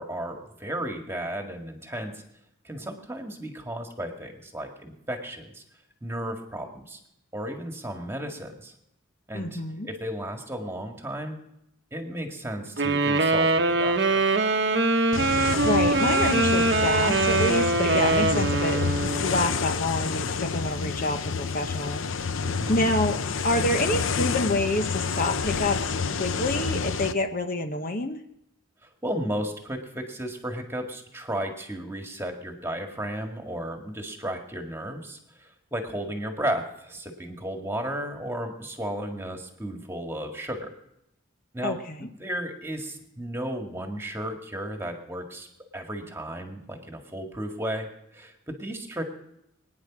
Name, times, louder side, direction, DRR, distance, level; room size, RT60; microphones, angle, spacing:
voice 1, 0.0-2.2 2.6-5.6 6.0-7.0 7.3-8.7 9.3-11.4 11.9-14.3 22.4-22.8 28.8-40.7 41.5-45.5 45.7-49.0, right 1 dB, 15° right, 3 dB, 1.9 m, -34 dB
voice 2, 9.3-9.9 15.6-22.0 22.3-28.2 41.6-42.1, left 2 dB, 45° left, 6 dB, 1.0 m, -28 dB
sound 1, 12.8-19.3, right 3 dB, 60° right, 1.0 m, -23 dB
sound 2, 15.1-27.1, left 5 dB, 80° left, 0.7 m, -29 dB
23.0 x 9.8 x 6.2 m, 0.82 s
head